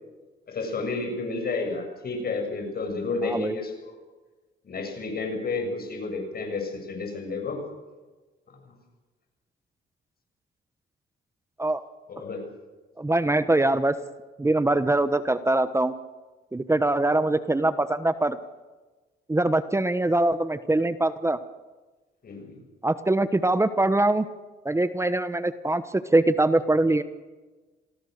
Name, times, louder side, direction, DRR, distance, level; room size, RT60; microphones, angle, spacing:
voice 1, 0.5-3.7 4.6-7.6 12.1-12.4 22.2-22.5, left 3 dB, 50° left, 5 dB, 7.1 m, -31 dB
voice 2, 3.2-3.5 11.6-11.8 13.0-13.9 14.4-15.9 16.5-18.4 19.3-21.4 22.8-24.3 24.6-27.0, right 2 dB, 15° right, 12 dB, 1.1 m, -23 dB
27.0 x 18.0 x 6.7 m, 1.2 s
cardioid pair, 90°, 20 cm